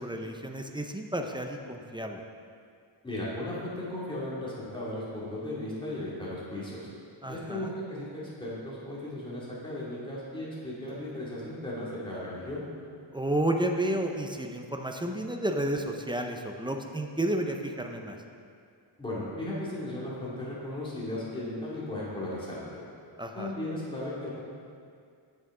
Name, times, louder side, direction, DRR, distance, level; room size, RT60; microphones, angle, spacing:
voice 1, 0.0-2.2 7.2-7.7 13.1-18.2 23.2-23.5, right 1 dB, 10° right, 3 dB, 0.5 m, -31 dB
voice 2, 3.0-6.9 7.3-12.6 19.0-22.6 23.3-24.3, left 1 dB, 10° left, -8 dB, 2.4 m, -36 dB
9.3 x 8.2 x 3.7 m, 2.3 s
wide cardioid pair, 125°, 49 cm